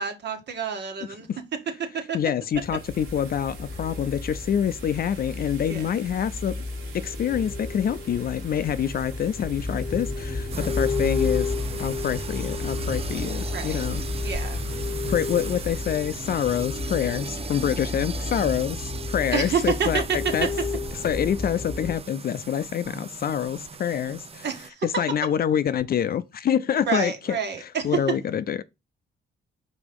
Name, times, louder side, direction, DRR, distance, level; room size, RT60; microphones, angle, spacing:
voice 1, 0.0-1.3 2.1-2.2 5.7-5.8 10.5-10.7 13.5-13.8 14.2-14.6 19.3-20.0 24.4-24.7 26.9-27.9, right 6 dB, 60° right, 1.6 m, -28 dB
voice 2, 2.1-6.6 6.9-11.5 11.8-14.3 15.1-20.5 20.9-24.5 24.8-28.6, left 9 dB, 50° left, 0.5 m, -26 dB
sound 1, 2.4-17.3, right 5 dB, 85° right, 1.9 m, -47 dB
sound 2, 2.6-22.0, left 3 dB, 10° left, 0.9 m, -32 dB
sound 3, 10.5-24.7, right 5 dB, 30° right, 0.6 m, -38 dB
5.0 x 4.1 x 5.3 m
cardioid pair, 90°, 20 cm